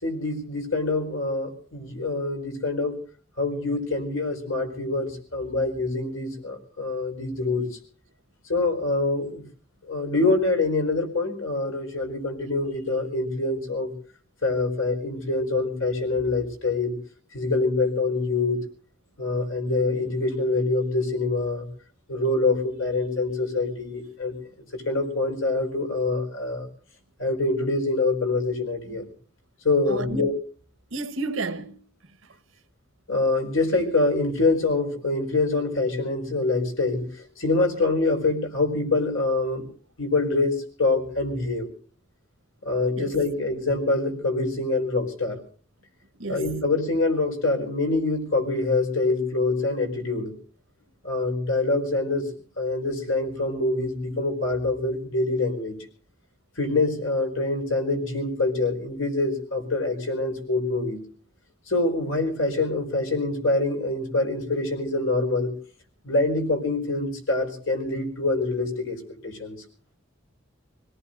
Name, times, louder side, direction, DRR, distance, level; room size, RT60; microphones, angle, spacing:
voice 1, 0.0-3.0 3.4-7.7 8.4-9.4 9.8-13.9 14.4-17.0 17.3-18.6 19.2-21.7 22.1-24.3 24.7-26.7 27.2-29.0 29.6-30.3 33.1-39.7 40.0-41.7 42.6-45.4 46.3-50.3 51.0-52.3 52.6-55.8 56.6-61.0 61.7-65.5 66.0-69.6, left 2 dB, 75° left, 4.6 m, -25 dB
voice 2, 29.8-30.2 30.9-31.8 43.0-43.2 46.2-46.6, right 3 dB, 75° right, 1.2 m, -32 dB
26.5 x 18.0 x 2.6 m
head